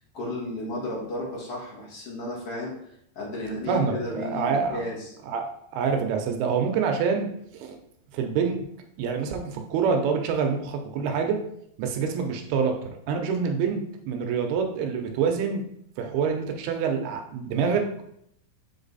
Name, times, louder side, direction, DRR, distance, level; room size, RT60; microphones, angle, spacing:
voice 1, 0.1-2.7 3.2-5.1, left 1 dB, 45° left, -5 dB, 2.2 m, -33 dB
voice 2, 3.7-4.9 5.3-7.3 7.5-7.8 8.1-8.7 9.0-11.4 11.8-12.8 13.1-15.6 16.0-18.0, right 6 dB, 75° right, 4 dB, 2.5 m, -26 dB
8.0 x 3.9 x 4.0 m, 0.72 s
omnidirectional pair, 4.9 m